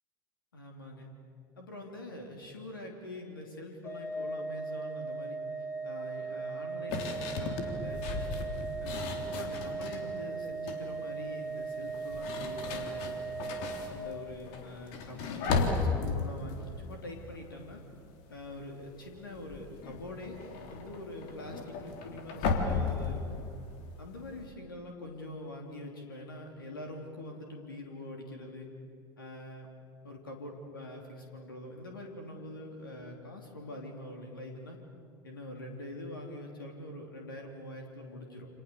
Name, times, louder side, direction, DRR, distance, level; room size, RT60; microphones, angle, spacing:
voice 1, 0.5-1.1 1.6-5.4 5.8-8.3 8.8-13.3 13.9-17.8 18.3-20.4 20.7-23.5 24.0-28.7 29.2-29.7 30.0-34.8 35.2-38.5, left 1 dB, 75° left, 2 dB, 3.1 m, -44 dB
Organ, 3.8-14.5, right 4 dB, 25° left, 3.7 m, -38 dB
sound 1, 6.9-10.1 10.5-10.9 11.8-18.0 18.3-18.7 19.0-24.5, left 4 dB, 55° left, 3.6 m, -35 dB
29.5 x 27.0 x 7.1 m, 2.3 s
figure-of-eight pair, 75°, 12 cm